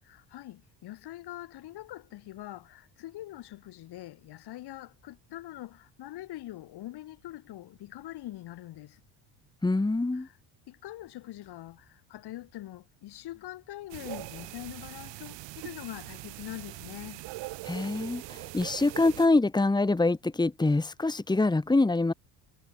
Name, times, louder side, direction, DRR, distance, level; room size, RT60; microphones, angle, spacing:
voice 1, 0.0-9.0 10.1-10.4 10.7-17.2, left 15 dB, 65° left, 5.0 m, -43 dB
voice 2, 9.6-10.3 17.6-22.1, left 2 dB, 10° left, 2.5 m, -25 dB
sound 1, 13.9-19.3, right 20 dB, 80° right, 3.2 m, -42 dB
cardioid pair, 140°, 43 cm